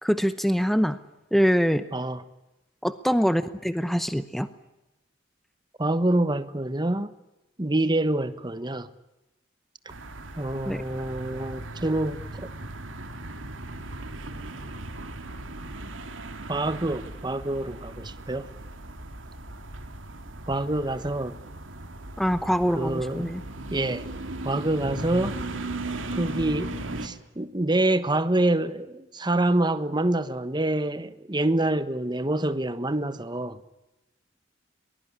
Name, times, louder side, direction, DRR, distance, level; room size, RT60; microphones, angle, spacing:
voice 1, 0.0-1.0 1.3-1.8 2.8-4.5 10.7-10.8 22.2-23.4, equal, ahead, 0.8 m, -24 dB
voice 2, 1.9-2.2 5.8-7.1 7.6-8.9 10.4-12.3 16.5-18.5 20.5-21.3 22.7-23.3 23.7-24.1 24.4-25.3 26.1-33.6, right 1 dB, 20° right, 1.2 m, -26 dB
sound 1, 9.9-27.1, right 2 dB, 80° right, 2.5 m, -37 dB
23.0 x 20.5 x 10.0 m
head